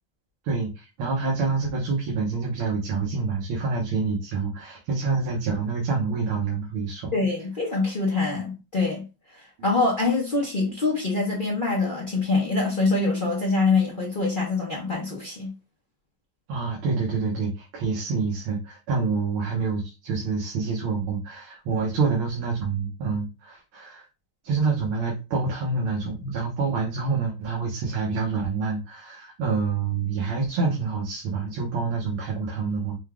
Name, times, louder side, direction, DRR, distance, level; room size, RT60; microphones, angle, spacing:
voice 1, 0.4-7.1 16.5-24.0 24.4-33.0, right 4 dB, 80° right, 2.0 m, -27 dB
voice 2, 7.1-9.0 9.3-15.5, left 3 dB, 65° left, 0.5 m, -24 dB
5.4 x 2.3 x 3.6 m
omnidirectional pair, 2.3 m